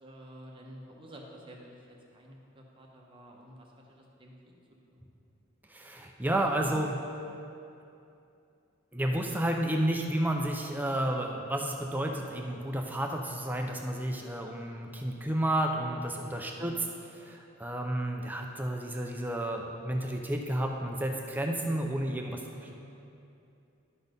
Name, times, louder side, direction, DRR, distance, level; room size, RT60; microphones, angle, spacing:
voice 1, 0.0-4.5 4.9-5.0 16.6-16.8 22.5-22.7, equal, 25° right, -2 dB, 1.1 m, -50 dB
voice 2, 5.7-7.0 8.9-16.7 17.1-22.4, right 1 dB, 10° right, 2 dB, 0.4 m, -31 dB
12.0 x 4.2 x 5.2 m, 2.7 s
head